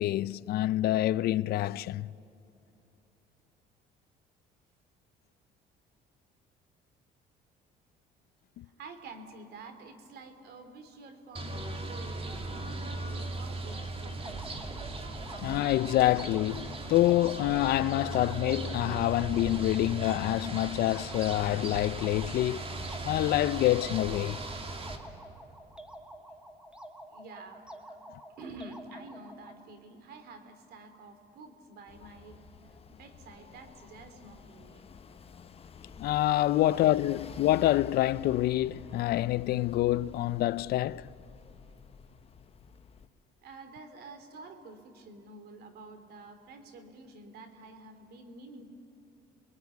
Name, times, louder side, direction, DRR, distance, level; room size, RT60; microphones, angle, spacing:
voice 1, 0.0-2.1 8.6-8.7 15.4-22.6 23.0-24.4 36.0-41.1, left 15 dB, 70° left, 0.5 m, -27 dB
voice 2, 8.6-14.4 27.1-28.0 28.4-34.9 36.5-37.0 43.4-48.7, right 3 dB, 70° right, 3.1 m, -49 dB
sound 1, 11.4-25.0, right 2 dB, 35° right, 2.7 m, -38 dB
sound 2, 14.2-29.6, right 1 dB, 5° right, 1.8 m, -49 dB
sound 3, 31.9-43.1, left 5 dB, 35° left, 1.1 m, -50 dB
28.0 x 21.0 x 9.4 m
cardioid pair, 110°, 17 cm